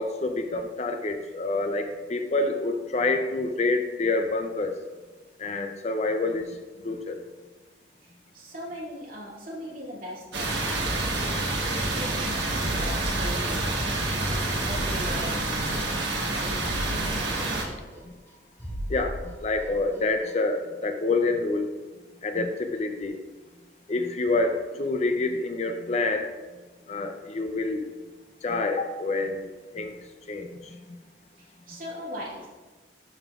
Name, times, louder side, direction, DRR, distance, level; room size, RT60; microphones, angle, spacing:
voice 1, 0.0-4.7 5.4-6.6 6.8-7.2 18.9-21.7 22.2-23.2 23.9-26.3 26.9-27.9 28.4-30.0 30.3-30.8, left 3 dB, 40° left, 6 dB, 0.5 m, -27 dB
voice 2, 8.0-11.0 11.4-12.5 12.8-13.8 14.6-18.0 31.4-32.5, equal, 50° right, -6 dB, 2.3 m, -40 dB
sound 1, 10.3-17.6, right 2 dB, 75° right, 1.3 m, -28 dB
sound 2, 12.6-14.0 14.3-14.4 14.6-16.0 16.3-16.4 16.6-18.3 18.6-20.0 20.3-20.4, equal, 15° left, 1.9 m, -36 dB
11.5 x 5.5 x 2.4 m, 1.3 s
head